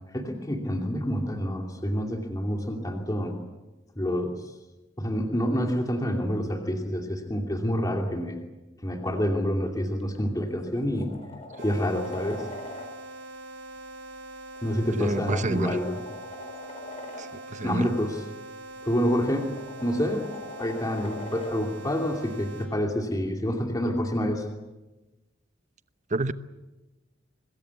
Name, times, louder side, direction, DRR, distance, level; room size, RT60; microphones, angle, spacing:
voice 1, 0.1-3.3 4.0-4.3 5.0-8.4 8.8-11.1 11.6-12.4 14.6-16.0 17.6-18.2 18.8-19.5 19.8-20.2 20.6-24.5, equal, 20° left, 2 dB, 2.7 m, -27 dB
sound 1, 10.0-10.2 10.6-12.9 14.5-17.3 18.8-21.6 23.9-24.0, left 2 dB, 35° left, 4.3 m, -42 dB
sound 2, 11.6-22.7, right 2 dB, 80° right, 6.6 m, -43 dB
voice 2, 15.0-15.8 17.2-17.9 26.1-26.3, right 2 dB, 40° right, 12 dB, 0.9 m, -29 dB
25.5 x 21.0 x 8.4 m, 1.1 s
head